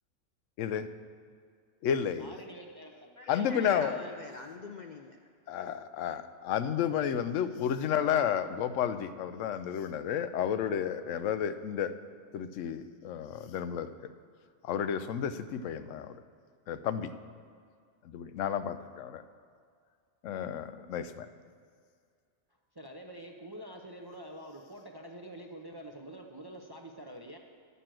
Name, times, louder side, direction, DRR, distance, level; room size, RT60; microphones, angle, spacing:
voice 1, 0.6-0.9 1.8-2.3 3.3-4.0 5.5-11.9 12.3-13.9 14.6-16.2 16.7-17.1 18.0-19.2 20.2-21.3, left 8 dB, 85° left, 12 dB, 0.9 m, -31 dB
voice 2, 2.2-4.1 22.7-27.4, right 1 dB, 25° right, 2 dB, 0.5 m, -47 dB
voice 3, 3.2-5.2, left 3 dB, 55° left, 4 dB, 0.5 m, -43 dB
10.0 x 6.8 x 7.5 m, 2.1 s
omnidirectional pair, 1.3 m